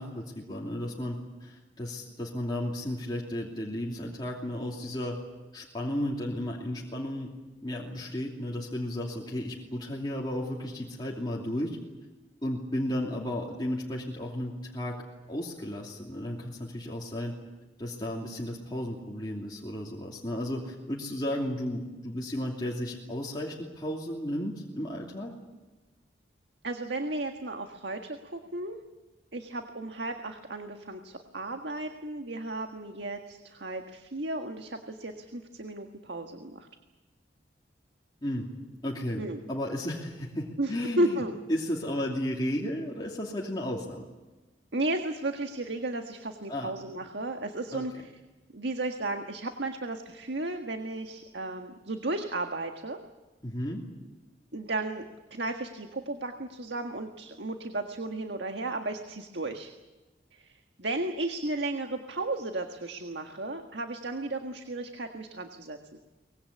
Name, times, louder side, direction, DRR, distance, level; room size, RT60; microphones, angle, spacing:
voice 1, 0.0-5.2 5.5-7.3 7.6-11.8 12.4-15.0 15.3-17.3 17.8-25.3 38.2-38.5 38.8-41.2 41.5-44.0 46.5-46.7 47.7-47.8 53.4-53.8, left 1 dB, 25° left, -3 dB, 2.8 m, -34 dB
voice 2, 26.6-28.8 29.3-36.7 39.2-39.4 40.6-40.7 41.0-41.3 44.7-48.1 48.5-53.0 54.5-59.7 60.3-65.8, right 2 dB, 75° right, 5 dB, 1.6 m, -34 dB
24.0 x 20.5 x 8.5 m, 1.2 s
head